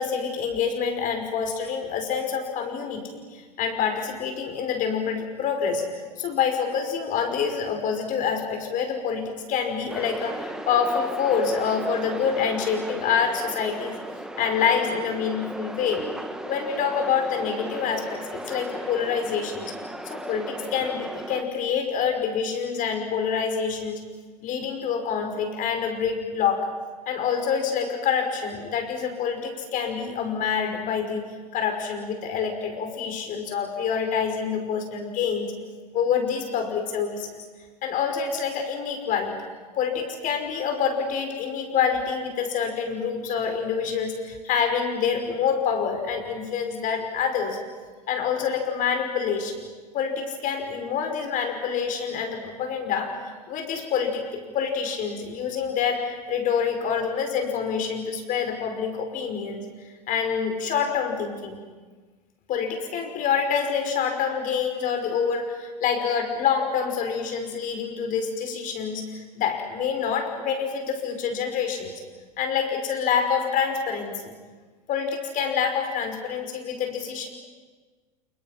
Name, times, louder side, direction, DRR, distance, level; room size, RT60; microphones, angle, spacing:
voice 1, 0.0-5.9 6.2-14.0 14.4-16.1 16.4-19.8 20.0-24.0 24.4-26.8 27.1-35.6 35.9-37.4 37.8-39.5 39.8-47.6 48.1-49.6 49.9-61.6 62.5-71.9 72.4-74.3 74.9-77.3, left 6 dB, 40° left, 5 dB, 5.8 m, -27 dB
sound 1, 9.9-21.4, right 1 dB, 5° right, 2.0 m, -36 dB
29.5 x 29.0 x 6.0 m, 1.4 s
hypercardioid pair, 85°, 20 cm